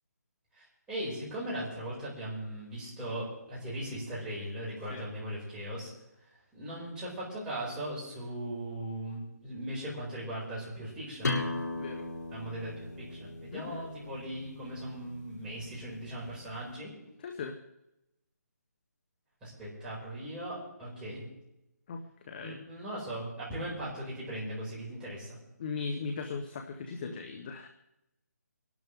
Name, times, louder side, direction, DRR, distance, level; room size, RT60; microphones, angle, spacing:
voice 1, 0.5-5.9 6.5-11.4 12.3-16.9 19.4-21.2 22.4-25.4, right 1 dB, 10° right, -8 dB, 6.7 m, -39 dB
sound 1, 11.2-16.6, left 2 dB, 75° left, 6.8 m, -38 dB
voice 2, 11.8-12.1 13.5-13.8 17.2-17.5 21.9-22.6 25.6-27.7, left 4 dB, 35° left, 5 dB, 1.3 m, -38 dB
25.5 x 12.5 x 3.8 m, 0.90 s
hypercardioid pair, 165°, 9 cm